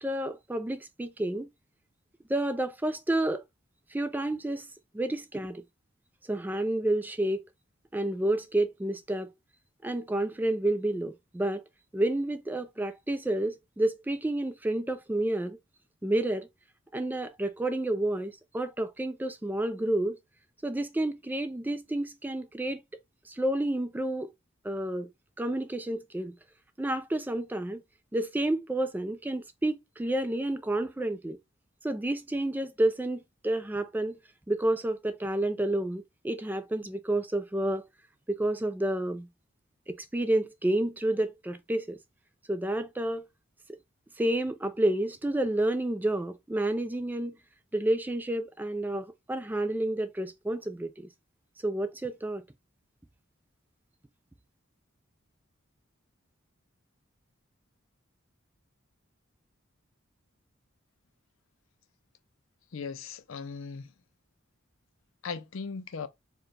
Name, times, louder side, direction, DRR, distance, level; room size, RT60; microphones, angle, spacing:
voice 1, 0.0-1.5 2.3-3.4 3.9-4.7 4.9-5.6 6.3-7.4 7.9-9.3 9.8-11.6 11.9-15.6 16.0-16.5 16.9-20.2 20.6-22.8 23.3-24.3 24.6-25.1 25.4-26.3 26.8-27.8 28.1-31.4 31.8-34.2 34.5-37.8 38.3-39.3 39.9-42.0 42.5-43.3 43.7-43.8 44.2-47.4 47.7-51.1 51.6-52.4, right 1 dB, 10° right, 0.3 m, -30 dB
voice 2, 62.7-63.9 65.2-66.1, left 5 dB, 75° left, 0.5 m, -38 dB
4.5 x 2.2 x 3.2 m
head